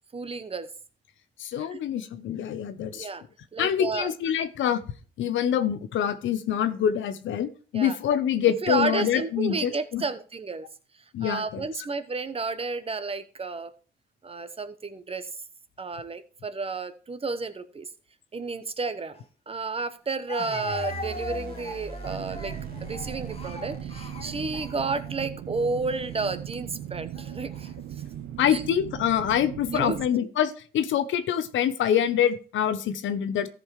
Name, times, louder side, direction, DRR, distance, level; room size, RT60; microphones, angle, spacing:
voice 1, 0.1-0.7 1.7-1.8 2.8-3.2 3.5-4.1 7.7-8.0 8.6-10.7 11.2-13.7 14.2-15.3 15.8-17.9 18.3-19.1 19.5-22.5 22.8-27.7 28.5-28.6 29.7-30.0, right 4 dB, 30° right, 11 dB, 1.0 m, -31 dB
voice 2, 1.4-3.1 3.6-4.8 5.2-10.0 11.1-11.9 28.4-33.5, left 9 dB, 75° left, 12 dB, 0.9 m, -26 dB
Speech, 19.1-19.2 20.3-25.2 25.9-26.2 27.1-27.7, left 2 dB, 30° left, 1.6 m, -40 dB
sound 1, 20.4-25.4, right 2 dB, 50° right, 2.9 m, -41 dB
sound 2, 22.1-30.1, right 11 dB, 90° right, 0.8 m, -38 dB
14.0 x 5.3 x 4.8 m, 0.38 s
cardioid pair, 90°, 20 cm